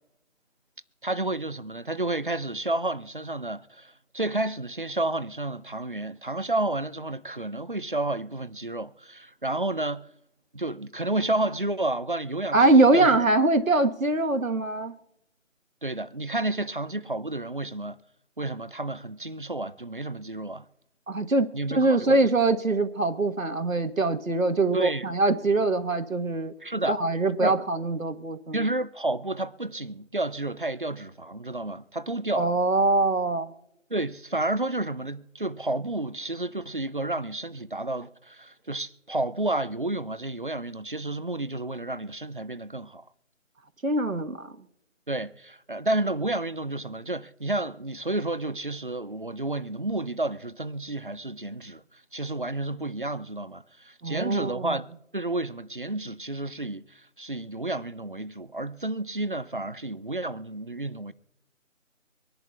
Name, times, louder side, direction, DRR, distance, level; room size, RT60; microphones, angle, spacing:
voice 1, 1.0-10.1 10.5-13.2 15.8-18.0 18.4-20.7 21.5-22.3 24.7-25.1 26.6-27.0 27.4-27.5 28.5-32.5 33.9-43.1 45.1-61.1, right 2 dB, 40° right, 0.5 m, -31 dB
voice 2, 12.5-15.0 21.1-26.5 26.8-28.7 32.3-33.5 43.8-44.5 54.0-54.8, right 2 dB, 85° right, 1.3 m, -23 dB
25.0 x 11.0 x 2.3 m
figure-of-eight pair, 160°, 40 cm